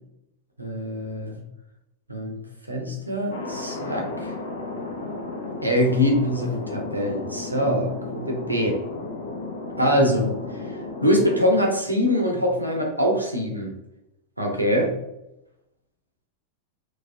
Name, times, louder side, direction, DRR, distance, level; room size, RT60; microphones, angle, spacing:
voice 1, 0.6-1.4 2.1-4.3 5.6-8.8 9.8-13.7 14.4-15.0, equal, 85° right, 1 dB, 0.8 m, -24 dB
Thunder, 3.3-11.4, left 2 dB, 65° left, 0.6 m, -34 dB
4.0 x 3.1 x 2.6 m, 0.87 s
figure-of-eight pair, 90°, 0 cm